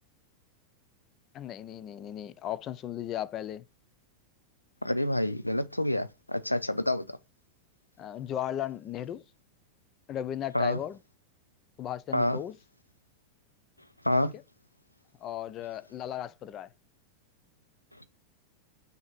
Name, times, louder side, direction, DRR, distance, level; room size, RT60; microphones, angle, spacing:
voice 1, 1.3-3.6 8.0-9.2 10.1-11.0 11.8-12.5 15.2-16.7, left 11 dB, 30° left, 0.5 m, -36 dB
voice 2, 4.8-7.2 10.5-10.8 12.1-12.4 14.0-14.3, left 1 dB, 85° left, 0.4 m, -28 dB
6.4 x 2.9 x 5.3 m
figure-of-eight pair, 90°, 0 cm